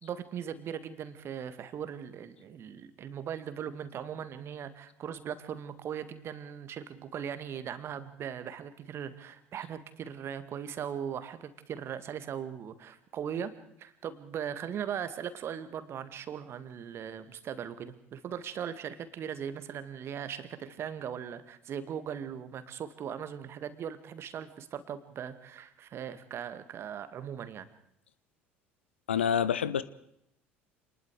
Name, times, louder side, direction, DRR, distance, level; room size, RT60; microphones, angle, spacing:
voice 1, 0.0-13.5 13.8-27.7, right 8 dB, 40° right, 12 dB, 2.0 m, -39 dB
voice 2, 29.1-29.8, left 8 dB, 75° left, 17 dB, 0.8 m, -27 dB
27.0 x 20.5 x 4.8 m, 0.76 s
figure-of-eight pair, 60°, 6 cm